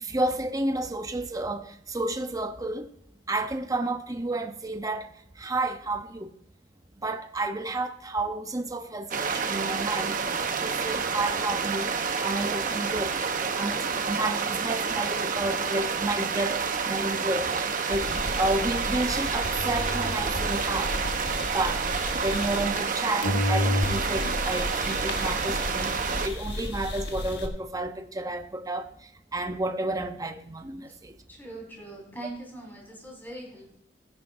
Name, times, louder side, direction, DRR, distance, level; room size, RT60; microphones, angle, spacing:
voice 1, 0.0-2.9 3.3-5.1 5.4-6.3 7.0-10.1 10.6-11.9 12.2-13.2 13.6-17.5 17.9-18.1 18.4-20.9 21.5-21.8 22.2-25.9 26.2-28.9 29.3-31.1, right 2 dB, 20° right, 0.7 m, -31 dB
sound 1, 9.1-26.3, right 5 dB, 50° right, 0.9 m, -29 dB
sound 2, 17.9-23.0 23.2-27.5, left 1 dB, 65° left, 1.4 m, -32 dB
voice 2, 31.3-33.8, right 2 dB, 10° left, 4.5 m, -42 dB
15.5 x 9.8 x 2.6 m
head